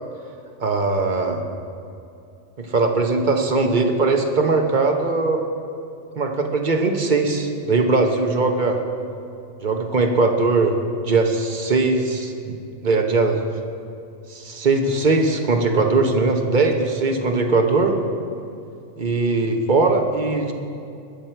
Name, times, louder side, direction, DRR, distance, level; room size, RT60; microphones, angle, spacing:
voice 1, 0.6-1.4 2.6-5.4 6.2-8.8 9.6-10.8 11.0-12.6 12.8-13.4 14.3-18.0 19.0-20.5, right 3 dB, 40° right, 4 dB, 1.1 m, -20 dB
21.0 x 7.4 x 4.5 m, 2.6 s
omnidirectional pair, 1.4 m